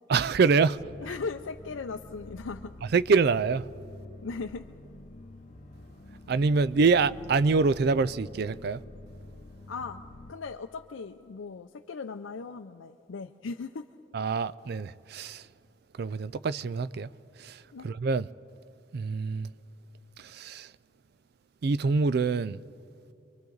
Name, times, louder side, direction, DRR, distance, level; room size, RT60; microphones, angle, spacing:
voice 1, 0.1-0.8 2.9-3.7 6.3-8.8 14.1-15.4 16.0-17.1 17.4-18.3 18.9-19.5 20.2-20.7 21.6-22.6, right 4 dB, 50° right, 0.4 m, -25 dB
sound 1, 0.8-10.3, left 1 dB, 35° left, 0.7 m, -47 dB
voice 2, 1.0-2.7 4.2-4.7 9.7-10.0 10.3-13.9 17.7-17.9, left 4 dB, 75° left, 0.5 m, -38 dB
29.5 x 23.5 x 3.9 m
head